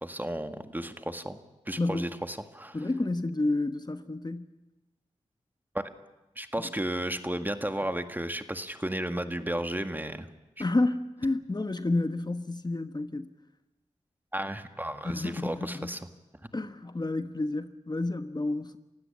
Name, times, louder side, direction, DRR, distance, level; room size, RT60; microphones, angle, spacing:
voice 1, 0.0-1.4 1.7-2.8 5.7-5.8 6.4-10.3 14.3-16.0, right 1 dB, 15° right, 8 dB, 1.8 m, -33 dB
voice 2, 1.8-2.1 2.7-4.5 10.6-13.3 15.0-16.0 16.5-18.8, left 2 dB, 35° left, 9 dB, 1.2 m, -30 dB
28.0 x 16.0 x 8.7 m, 1.0 s
cardioid pair, 45°, 12 cm